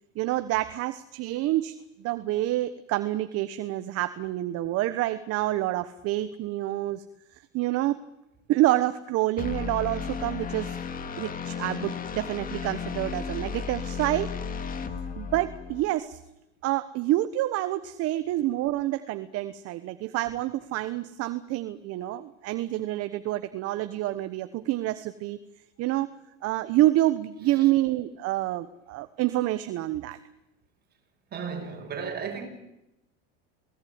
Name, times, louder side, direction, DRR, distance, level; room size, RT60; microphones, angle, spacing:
voice 1, 0.1-7.0 7.5-8.0 8.5-10.8 11.2-14.3 15.2-16.2 16.6-25.4 25.8-26.1 26.4-30.2, right 15 dB, 45° right, 1.2 m, -27 dB
sound 1, 9.4-15.9, left 6 dB, 25° left, 2.3 m, -34 dB
voice 2, 31.3-32.5, right 6 dB, 30° right, 5.9 m, -35 dB
28.5 x 18.0 x 9.6 m
supercardioid pair, 125°, 32 cm